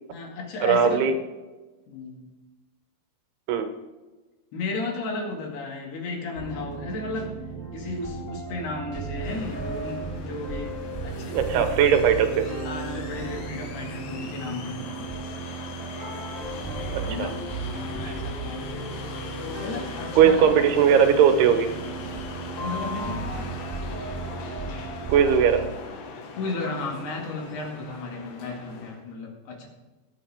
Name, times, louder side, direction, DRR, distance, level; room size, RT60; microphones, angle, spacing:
voice 1, 0.1-1.0 1.9-2.3 4.5-7.3 7.7-10.8 11.0-11.6 12.6-15.1 17.0-18.7 19.4-20.5 22.5-23.2 26.4-29.7, left 3 dB, 75° left, 0 dB, 4.2 m, -34 dB
voice 2, 0.6-1.1 3.5-3.7 11.3-12.4 16.9-17.3 18.1-18.2 20.1-21.7 25.1-25.6, right 7 dB, 80° right, 8 dB, 3.0 m, -19 dB
sound 1, 6.3-25.7, right 3 dB, 5° right, 2.6 m, -35 dB
sound 2, 9.2-29.0, left 4 dB, 90° left, 3.8 m, -40 dB
20.5 x 8.3 x 3.6 m, 1.2 s
omnidirectional pair, 4.7 m